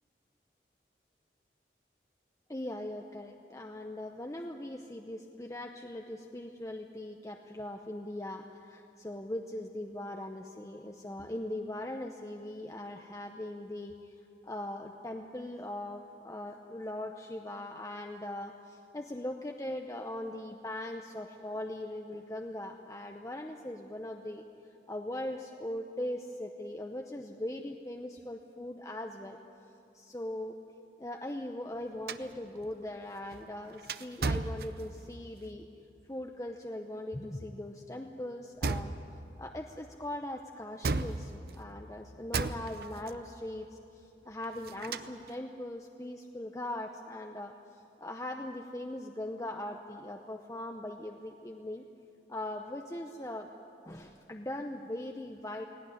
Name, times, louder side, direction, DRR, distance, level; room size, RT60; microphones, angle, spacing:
voice 1, 2.5-14.1 14.4-24.4 24.9-29.4 29.9-30.5 31.0-35.7 36.1-38.9 39.4-51.8 52.3-53.5 53.9-55.7, left 1 dB, 20° left, 3 dB, 0.7 m, -40 dB
sound 1, 32.1-35.2 38.6-39.3 40.8-41.7 42.3-43.2 44.4-45.3, right 3 dB, 60° right, 0.6 m, -35 dB
18.5 x 17.5 x 9.9 m, 2.7 s
head